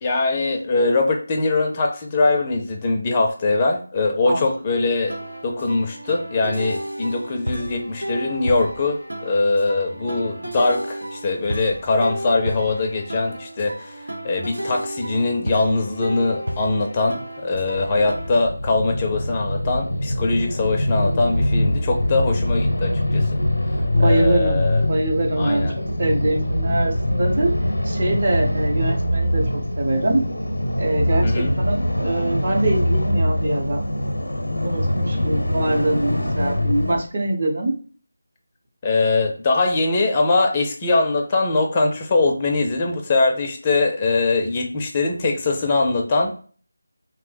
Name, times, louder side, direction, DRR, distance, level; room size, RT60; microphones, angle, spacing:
voice 1, 0.0-5.2 5.4-13.9 14.2-23.3 24.0-24.8 25.4-25.8 31.2-31.5 35.1-35.2 38.8-46.4, left 3 dB, 25° left, 2 dB, 0.4 m, -22 dB
sound 1, 4.9-18.3, right 1 dB, 85° right, 0.7 m, -32 dB
sound 2, 17.5-37.0, left 1 dB, 85° left, 0.5 m, -23 dB
voice 2, 23.9-25.7 26.0-27.5 27.8-29.4 29.8-30.2 30.8-33.9 34.6-37.7, right 2 dB, 40° right, 0 dB, 0.8 m, -23 dB
2.9 x 2.0 x 3.2 m, 0.42 s
figure-of-eight pair, 165°, 0 cm